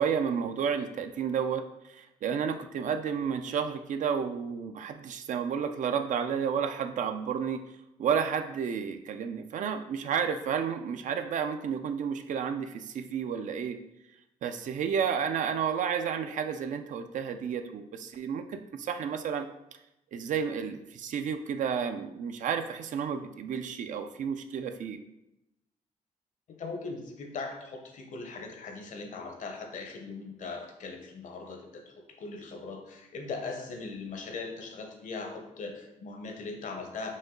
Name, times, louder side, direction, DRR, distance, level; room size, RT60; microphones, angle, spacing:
voice 1, 0.0-1.6 1.9-7.6 8.0-13.8 14.4-19.5 20.1-25.0, right 7 dB, 65° right, 8 dB, 0.4 m, -31 dB
voice 2, 26.5-37.2, left 3 dB, 65° left, 4 dB, 0.8 m, -40 dB
5.2 x 2.2 x 3.8 m, 0.89 s
cardioid pair, 80°, 14 cm